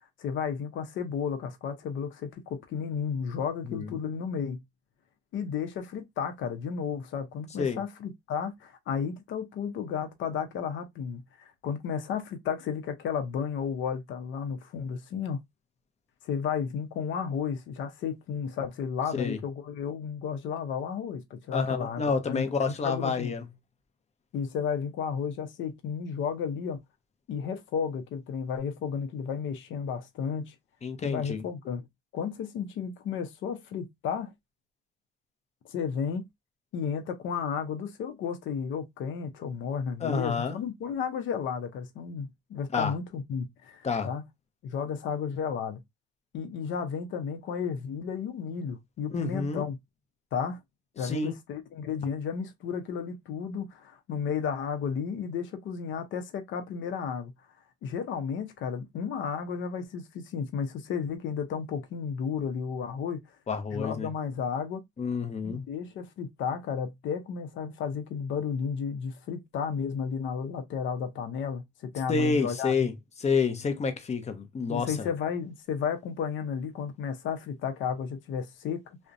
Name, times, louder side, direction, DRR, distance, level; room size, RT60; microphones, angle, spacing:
voice 1, 0.2-4.6 5.3-15.4 16.2-23.3 24.3-26.8 27.3-30.5 31.0-31.8 32.1-34.3 35.7-36.2 36.7-44.2 44.6-45.8 46.3-49.8 50.3-50.6 51.0-57.3 57.8-63.2 63.7-64.8 65.4-72.9 74.7-79.0, left 6 dB, 70° left, 0.7 m, -33 dB
voice 2, 21.5-23.4 30.8-31.4 40.0-40.6 42.7-42.9 43.8-44.1 49.1-49.6 51.0-51.3 63.5-64.1 65.0-65.6 72.1-72.9 73.2-75.1, left 5 dB, 30° left, 0.7 m, -29 dB
2.5 x 2.1 x 2.5 m
supercardioid pair, 75°, 21 cm